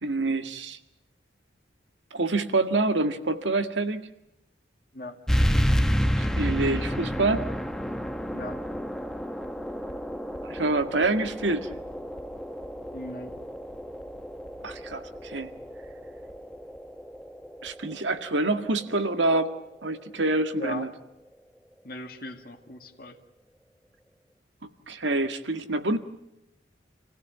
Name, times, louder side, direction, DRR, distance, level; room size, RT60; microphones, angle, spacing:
voice 1, 0.0-0.8 2.1-4.1 6.2-7.5 10.4-11.7 14.6-15.5 17.6-19.5 19.8-20.9 24.9-26.0, right 2 dB, 80° right, 8 dB, 1.9 m, -26 dB
sound 1, 5.3-20.4, equal, 5° left, 1.0 m, -31 dB
voice 2, 12.9-13.4 20.5-20.9 21.8-23.2, left 2 dB, 50° left, 5 dB, 2.0 m, -38 dB
28.0 x 16.5 x 9.3 m, 0.88 s
head